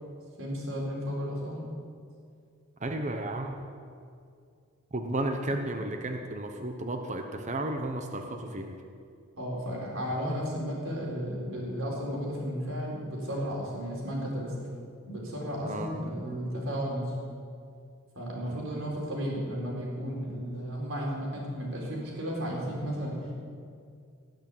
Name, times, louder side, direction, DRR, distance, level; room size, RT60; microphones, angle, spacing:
voice 1, 0.4-1.6 9.4-14.5 15.1-17.1 18.1-23.3, equal, 70° right, -3 dB, 4.3 m, -34 dB
voice 2, 2.8-3.6 4.9-8.8 15.6-15.9 18.5-18.6, right 1 dB, 35° right, 4 dB, 1.0 m, -33 dB
18.5 x 6.6 x 8.4 m, 2.3 s
head